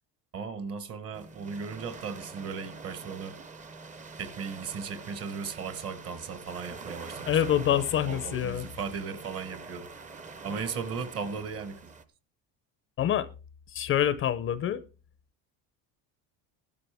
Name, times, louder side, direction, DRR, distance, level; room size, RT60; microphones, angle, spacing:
voice 1, 0.3-3.4 4.2-9.9 10.4-11.9, right 5 dB, 40° right, 1.2 m, -37 dB
sound 1, 1.1-12.0, right 4 dB, 20° right, 0.7 m, -45 dB
voice 2, 7.3-8.7 13.0-13.3 13.7-14.8, left 10 dB, 35° left, 0.6 m, -26 dB
15.0 x 12.5 x 3.4 m
cardioid pair, 165°, 37 cm